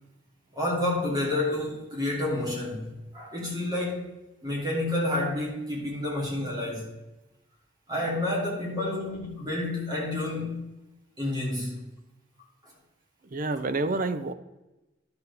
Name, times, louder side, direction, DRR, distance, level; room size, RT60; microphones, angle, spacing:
voice 1, 0.5-2.9 3.1-4.1 4.4-6.8 7.9-10.6 11.2-11.8, left 1 dB, 20° right, -4 dB, 2.9 m, -29 dB
voice 2, 13.2-14.3, right 2 dB, 45° right, 11 dB, 0.6 m, -28 dB
11.5 x 6.8 x 3.4 m, 1.0 s
head